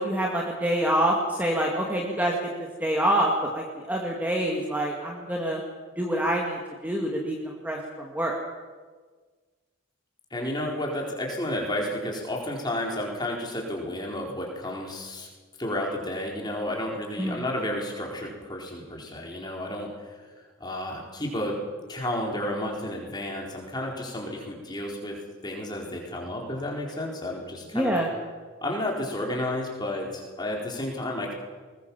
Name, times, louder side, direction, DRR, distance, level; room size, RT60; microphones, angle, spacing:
voice 1, 0.0-2.4 2.8-5.6 6.0-8.4 17.2-17.5 27.7-28.1, right 1 dB, 10° right, -1 dB, 2.0 m, -26 dB
voice 2, 10.3-15.3 15.6-20.2 20.6-21.6 21.9-25.2 25.4-28.0 28.6-31.3, left 1 dB, 20° left, -1 dB, 4.4 m, -31 dB
20.5 x 20.5 x 7.3 m, 1.4 s
head